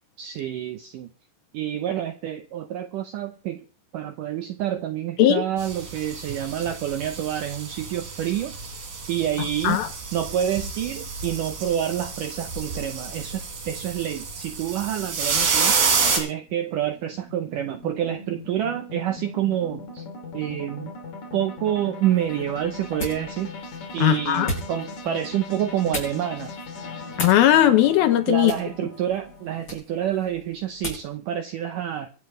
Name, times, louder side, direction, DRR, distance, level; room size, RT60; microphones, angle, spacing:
voice 1, 0.2-1.1 1.5-3.6 3.9-8.5 9.1-9.8 10.1-15.7 16.2-20.0 20.3-20.9 21.3-23.5 23.9-26.5 28.3-32.1, right 11 dB, 80° right, 1.9 m, -28 dB
sound 1, 5.6-16.2, right 5 dB, 60° right, 4.7 m, -29 dB
sound 2, 16.2-29.6, left 3 dB, 45° left, 3.7 m, -39 dB
sound 3, 22.0-31.2, left 1 dB, 25° left, 6.5 m, -38 dB
voice 2, 24.0-24.5 27.2-28.5, left 12 dB, 75° left, 2.5 m, -18 dB
24.5 x 9.2 x 3.2 m
omnidirectional pair, 4.9 m